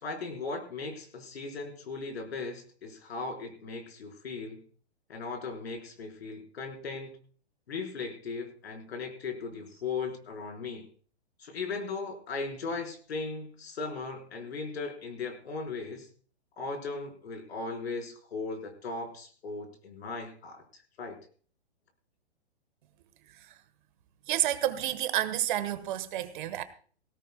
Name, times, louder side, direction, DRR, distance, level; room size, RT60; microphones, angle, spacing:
voice 1, 0.0-4.6 5.1-7.2 7.7-10.9 11.4-16.1 16.6-20.6 21.0-21.1, left 4 dB, 70° left, 4.4 m, -37 dB
voice 2, 24.3-26.6, right 13 dB, 50° right, 1.3 m, -30 dB
19.5 x 17.0 x 2.2 m
hypercardioid pair, 130°, 33 cm